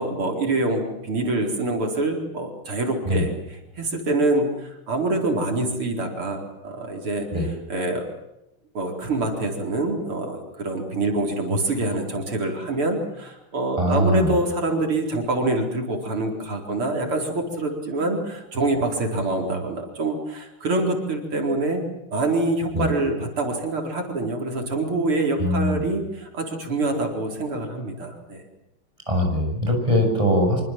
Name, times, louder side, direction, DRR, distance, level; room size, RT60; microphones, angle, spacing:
voice 1, 0.0-8.0 8.8-21.8 22.1-28.4, right 2 dB, 80° right, 2 dB, 5.2 m, -25 dB
voice 2, 13.8-14.3 22.7-22.9 25.4-25.8 29.1-30.6, equal, 15° right, 3 dB, 7.8 m, -21 dB
26.0 x 24.5 x 7.5 m, 0.90 s
omnidirectional pair, 2.4 m